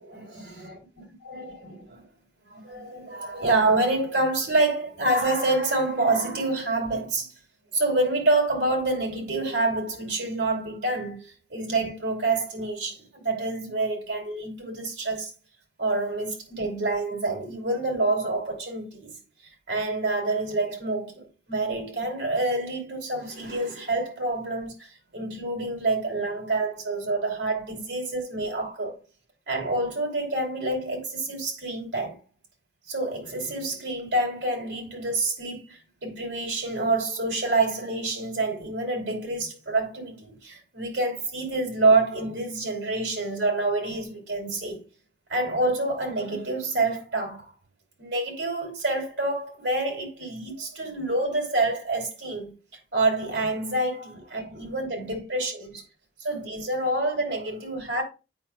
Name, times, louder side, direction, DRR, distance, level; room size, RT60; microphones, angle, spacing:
voice 1, 0.0-0.4 1.2-2.0 2.5-7.3 7.7-15.3 15.8-19.2 19.7-29.0 29.5-32.2 32.9-44.9 45.3-47.4 48.0-52.5 52.9-55.8 56.2-58.0, right 2 dB, 90° right, 2.9 m, -27 dB
8.6 x 5.6 x 2.2 m
head